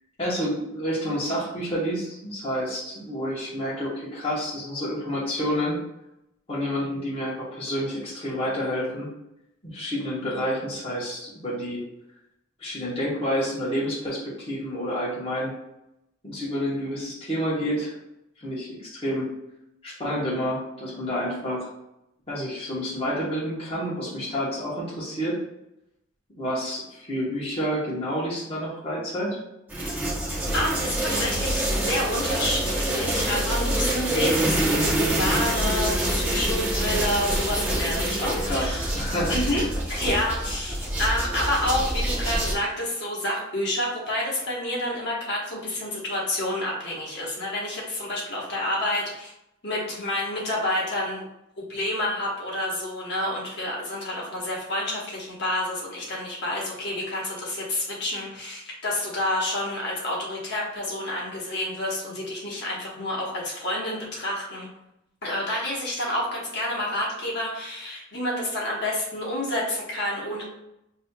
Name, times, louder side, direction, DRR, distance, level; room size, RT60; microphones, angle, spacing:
voice 1, 0.2-5.8 6.5-9.1 9.6-11.8 12.6-15.5 16.2-17.9 18.4-19.3 19.8-21.7 22.3-25.4 26.4-29.4 38.2-39.7, equal, 25° left, -7 dB, 1.0 m, -29 dB
sound 1, 29.7-42.5, right 1 dB, 10° right, 0.7 m, -26 dB
voice 2, 30.5-38.9 39.3-49.3 49.6-51.2 51.6-64.7 65.2-70.5, left 1 dB, 55° left, -4 dB, 1.1 m, -29 dB
6.1 x 2.7 x 2.2 m, 0.86 s
head